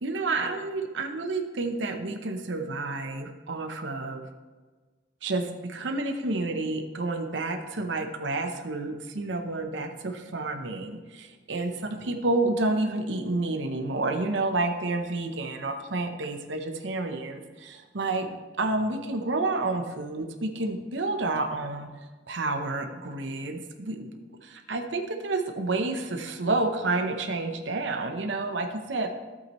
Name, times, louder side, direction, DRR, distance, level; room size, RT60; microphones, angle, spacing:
voice 1, 0.0-4.2 5.2-11.7 12.1-18.3 18.6-21.9 22.3-29.1, right 2 dB, 90° right, 5 dB, 0.8 m, -30 dB
12.0 x 8.4 x 3.1 m, 1.3 s
head